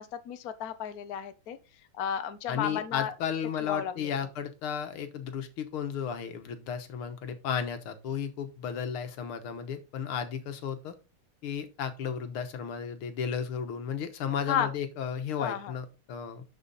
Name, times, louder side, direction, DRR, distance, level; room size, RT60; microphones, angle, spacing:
voice 1, 0.0-1.6 2.0-3.1 3.6-4.1 14.5-14.7 15.4-15.7, left 9 dB, 55° left, 1.2 m, -33 dB
voice 2, 2.5-10.9 11.4-16.4, left 7 dB, 85° left, 2.0 m, -34 dB
12.0 x 5.0 x 4.1 m
omnidirectional pair, 2.3 m